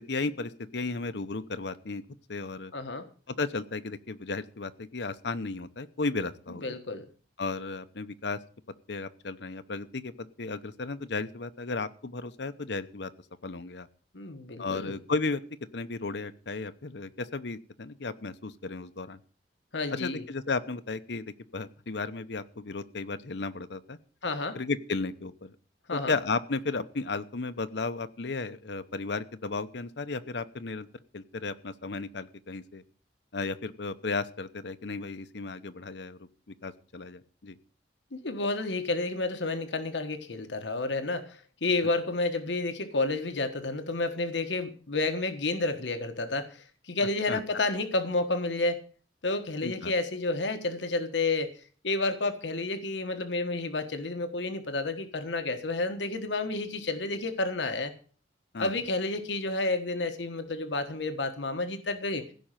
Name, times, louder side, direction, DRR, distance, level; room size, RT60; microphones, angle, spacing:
voice 1, 0.1-2.0 2.3-2.7 3.3-6.8 7.4-8.4 8.9-13.1 13.4-13.9 14.6-15.4 15.7-19.2 19.9-24.0 24.5-25.5 25.9-30.9 31.1-32.8 33.3-36.3 36.6-37.6 47.3-47.4 49.6-49.9 58.5-58.7, left 3 dB, 70° left, 11 dB, 0.9 m, -34 dB
voice 2, 2.7-3.1 6.6-7.1 14.1-14.9 19.7-20.2 24.2-24.6 25.9-26.1 38.1-48.8 49.2-57.9 58.6-62.2, left 2 dB, 90° left, 7 dB, 1.4 m, -30 dB
16.0 x 5.5 x 9.0 m, 0.41 s
head